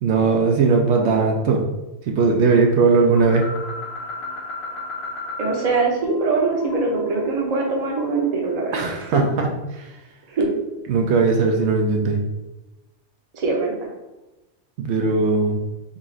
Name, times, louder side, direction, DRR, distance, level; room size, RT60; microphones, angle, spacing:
voice 1, 0.0-1.6 2.1-3.5 8.7-9.5 9.7-9.9 10.9-12.2 14.8-15.6, right 4 dB, 75° right, 1 dB, 0.8 m, -18 dB
sound 1, 3.2-5.8 6.0-8.3, left 3 dB, 65° left, 0.9 m, -34 dB
voice 2, 5.4-9.2 10.3-10.5 13.3-13.9, right 3 dB, 40° right, 0 dB, 0.7 m, -22 dB
4.0 x 2.4 x 3.8 m, 1.0 s
omnidirectional pair, 1.2 m